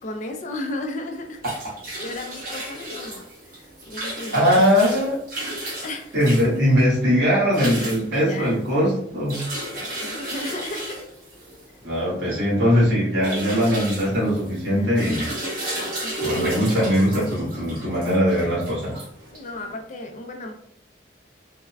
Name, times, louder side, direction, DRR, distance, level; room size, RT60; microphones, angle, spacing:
voice 1, 0.0-1.4 2.0-3.3 3.5-4.6 5.8-6.4 8.1-8.5 9.7-11.0 14.7-15.2 16.0-16.5 19.3-20.5, left 2 dB, 40° left, 4 dB, 0.4 m, -34 dB
sound 1, 1.1-19.7, right 1 dB, 50° right, 1.0 m, -34 dB
voice 2, 4.3-5.2 6.1-9.5 11.8-15.3 16.2-19.0, equal, 65° right, -7 dB, 1.5 m, -20 dB
3.3 x 2.1 x 2.5 m, 0.67 s
head